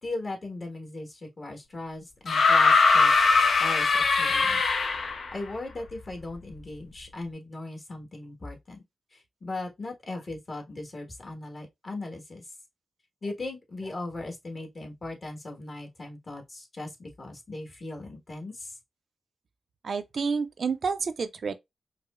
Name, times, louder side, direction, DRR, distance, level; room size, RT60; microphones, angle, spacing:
voice 1, 0.0-3.1 3.6-4.6 5.3-8.8 9.1-12.5 13.2-18.8, left 2 dB, 45° left, 1.3 m, -38 dB
sound 1, 2.3-5.3 6.6-6.7, left 4 dB, 65° left, 0.5 m, -21 dB
voice 2, 19.8-21.5, right 5 dB, 65° right, 0.4 m, -29 dB
4.7 x 2.0 x 2.4 m
cardioid pair, 55°, 0 cm